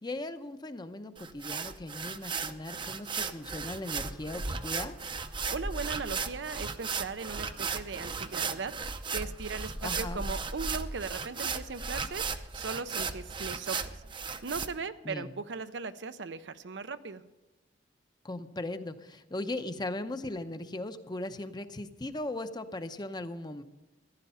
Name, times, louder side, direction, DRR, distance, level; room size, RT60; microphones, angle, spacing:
voice 1, 0.0-5.0 9.8-10.2 15.0-15.3 18.2-23.6, left 2 dB, 25° left, 10 dB, 0.7 m, -38 dB
sound 1, 1.2-14.7, right 5 dB, 25° right, 0.6 m, -36 dB
sound 2, 3.2-12.4, equal, ahead, 0.8 m, -44 dB
voice 2, 5.5-17.2, right 4 dB, 80° right, 12 dB, 0.6 m, -38 dB
15.0 x 11.0 x 5.6 m, 1.1 s
head